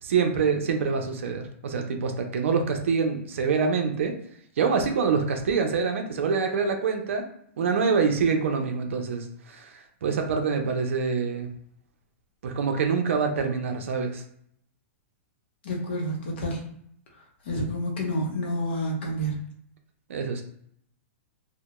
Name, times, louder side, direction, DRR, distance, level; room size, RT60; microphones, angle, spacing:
voice 1, 0.0-4.1 4.6-7.2 7.6-9.7 10.0-11.5 12.4-14.2 20.1-20.4, right 5 dB, 65° right, 4 dB, 0.5 m, -25 dB
voice 2, 15.6-16.7 17.4-19.4, equal, 50° left, 0 dB, 0.8 m, -29 dB
2.2 x 2.1 x 2.9 m, 0.68 s
hypercardioid pair, 170°, 7 cm